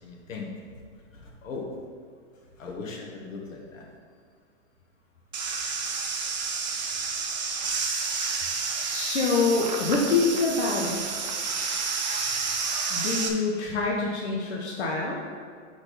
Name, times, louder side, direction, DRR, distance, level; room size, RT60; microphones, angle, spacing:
voice 1, 0.0-0.5 1.4-1.8 2.6-3.8, left 4 dB, 85° left, -1 dB, 1.8 m, -38 dB
sound 1, 5.3-13.3, right 5 dB, 35° right, 0.5 m, -30 dB
voice 2, 8.9-11.0 12.9-15.2, left 4 dB, 60° left, -3 dB, 1.1 m, -25 dB
6.2 x 6.1 x 4.1 m, 2.1 s
hypercardioid pair, 175°, 38 cm